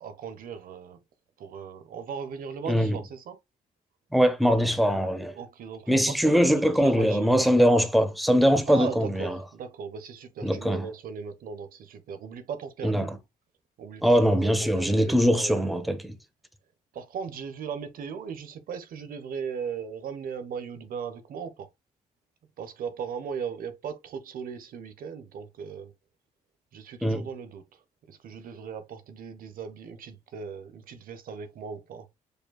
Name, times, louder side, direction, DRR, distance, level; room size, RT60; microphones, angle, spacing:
voice 1, 0.0-1.0 1.4-3.4 5.3-6.4 6.8-7.5 8.7-13.1 13.8-16.0 16.9-21.7 22.6-25.9 26.7-27.6 28.1-32.0, right 6 dB, 70° right, 1.0 m, -38 dB
voice 2, 2.7-3.0 4.1-5.3 5.9-9.4 10.4-10.9 12.8-13.2 14.0-16.1 27.0-27.3, equal, ahead, 1.0 m, -22 dB
5.2 x 4.4 x 2.2 m
cardioid pair, 90°, 15 cm